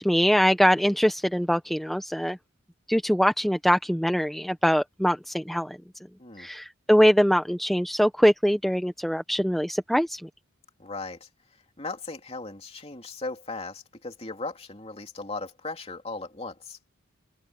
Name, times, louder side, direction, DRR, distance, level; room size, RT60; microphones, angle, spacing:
voice 1, 0.0-2.4 2.9-5.8 6.4-10.2, equal, ahead, 0.6 m, -23 dB
voice 2, 10.8-16.8, left 3 dB, 30° left, 3.0 m, -37 dB
open air
head